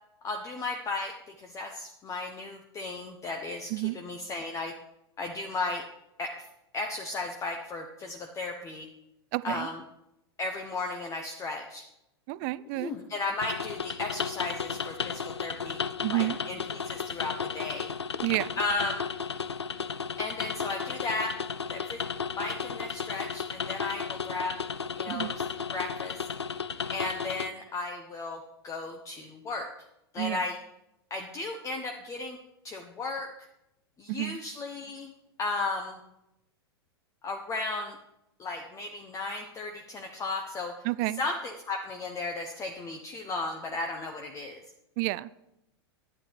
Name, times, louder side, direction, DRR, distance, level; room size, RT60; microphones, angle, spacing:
voice 1, 0.2-4.7 5.2-5.9 6.2-6.4 6.7-8.9 9.4-9.8 10.4-11.8 12.7-15.8 16.1-17.9 18.6-19.0 20.2-21.4 21.7-22.0 22.3-24.6 25.0-26.2 26.9-29.7 30.1-30.6 31.1-32.4 32.6-33.3 34.0-35.1 35.4-36.0 37.2-38.0 38.4-40.7 41.2-44.6, left 3 dB, 20° left, 3 dB, 1.0 m, -35 dB
voice 2, 9.3-9.7 12.3-12.9 16.0-16.4 18.2-18.5 25.1-25.3 30.2-30.4 34.1-34.4 40.8-41.2 45.0-45.3, right 21 dB, 40° right, 17 dB, 0.4 m, -30 dB
sound 1, 13.4-27.5, left 6 dB, 85° left, 0.4 m, -34 dB
11.0 x 9.4 x 3.3 m, 0.84 s
figure-of-eight pair, 95°, 14 cm